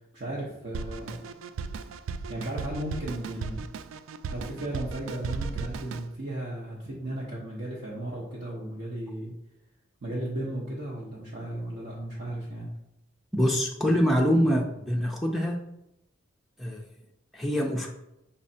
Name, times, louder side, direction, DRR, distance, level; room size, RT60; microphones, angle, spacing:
voice 1, 0.1-1.2 2.3-3.7 4.3-9.3 10.0-12.7, right 1 dB, 60° right, -5 dB, 0.9 m, -35 dB
Drum kit, 0.7-6.1, right 5 dB, 80° right, 0.3 m, -36 dB
voice 2, 13.3-15.6 16.6-16.8 17.3-17.9, equal, ahead, -2 dB, 0.4 m, -24 dB
5.5 x 3.2 x 2.7 m, 0.86 s
head